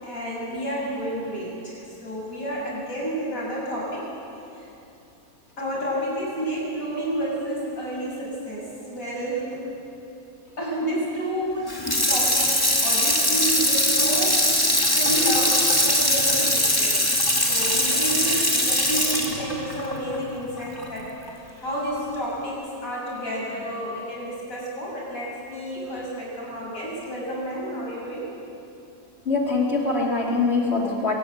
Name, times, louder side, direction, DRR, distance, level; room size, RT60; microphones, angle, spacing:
voice 1, 0.0-4.2 4.5-4.7 5.6-9.6 10.6-11.7 12.1-14.6 14.9-17.0 17.5-21.1 21.6-28.3, right 1 dB, 65° left, -4 dB, 7.2 m, -30 dB
Water tap faucet / Sink (filling or washing), 11.7-20.9 21.3-21.4, left 1 dB, 15° left, 2.6 m, -21 dB
voice 2, 29.3-31.1, left 3 dB, 45° left, 0 dB, 2.9 m, -23 dB
23.5 x 15.5 x 9.3 m, 2.8 s
omnidirectional pair, 1.6 m